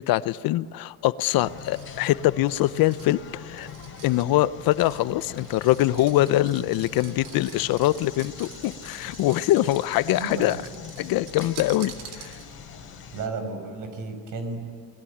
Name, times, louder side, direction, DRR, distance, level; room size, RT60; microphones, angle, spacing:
voice 1, 0.1-3.7 4.0-10.6 11.0-12.3, left 15 dB, 60° left, 16 dB, 0.7 m, -23 dB
sound 1, 1.3-13.3, left 6 dB, 30° left, 4.5 m, -43 dB
sound 2, 1.4-12.7, right 8 dB, 80° right, 3.4 m, -47 dB
voice 2, 10.1-10.5 13.1-14.7, right 3 dB, 55° right, 7 dB, 5.7 m, -33 dB
29.5 x 20.5 x 8.6 m, 2.4 s
cardioid pair, 140°, 39 cm